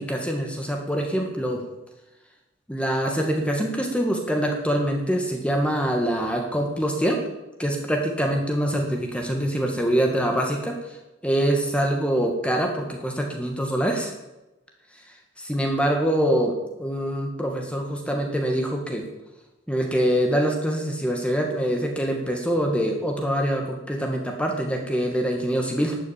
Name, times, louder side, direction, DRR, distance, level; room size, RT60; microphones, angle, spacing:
voice 1, 0.0-1.6 2.7-7.2 7.6-10.7 11.2-14.1 15.4-16.5 16.8-19.0 19.7-26.0, equal, 5° left, 1 dB, 2.0 m, -24 dB
12.0 x 9.1 x 8.9 m, 0.98 s
head